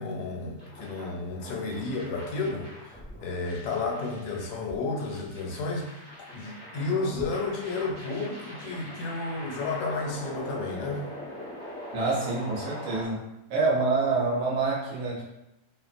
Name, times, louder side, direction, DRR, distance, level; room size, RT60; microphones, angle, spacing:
voice 1, 0.0-6.1 6.3-11.1, left 3 dB, 75° left, 0 dB, 1.1 m, -32 dB
sound 1, 0.6-13.1, equal, 10° left, 0.5 m, -42 dB
voice 2, 11.9-13.2 13.5-15.2, right 3 dB, 65° right, -4 dB, 1.0 m, -26 dB
2.8 x 2.1 x 2.4 m, 0.88 s
omnidirectional pair, 1.8 m